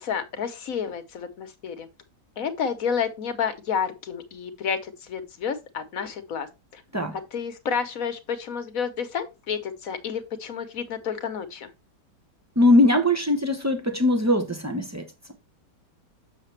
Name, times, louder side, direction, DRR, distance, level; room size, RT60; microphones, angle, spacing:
voice 1, 0.0-1.9 2.4-6.5 6.7-6.8 7.3-11.7, left 7 dB, 60° left, 1.2 m, -30 dB
voice 2, 12.6-15.1, left 1 dB, 25° right, 0.3 m, -21 dB
6.8 x 6.6 x 3.3 m
omnidirectional pair, 1.9 m